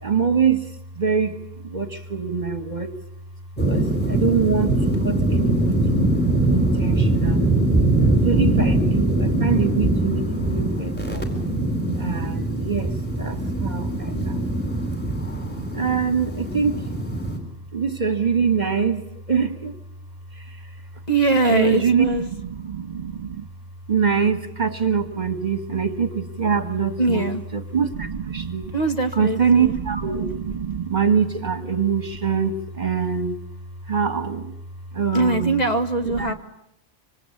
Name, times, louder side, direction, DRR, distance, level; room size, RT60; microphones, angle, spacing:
voice 1, 0.0-0.6 1.0-1.3 1.6-2.9 3.7-4.7 5.0-6.0 6.5-7.6 8.2-11.2 12.0-12.9 13.2-14.5 15.7-16.9 17.7-19.0 19.3-19.7 21.5-22.0 22.6-23.4 23.9-27.2 27.5-28.7 29.2-33.3 33.9-34.5 34.9-35.6, right 6 dB, 40° right, 10 dB, 1.6 m, -24 dB
sound 1, 3.6-17.4, right 2 dB, 10° left, 4.2 m, -22 dB
voice 2, 21.1-22.3 27.0-27.4 28.7-29.8 35.1-36.3, right 2 dB, 35° left, 6 dB, 1.9 m, -22 dB
26.0 x 25.5 x 8.6 m, 0.76 s
omnidirectional pair, 1.2 m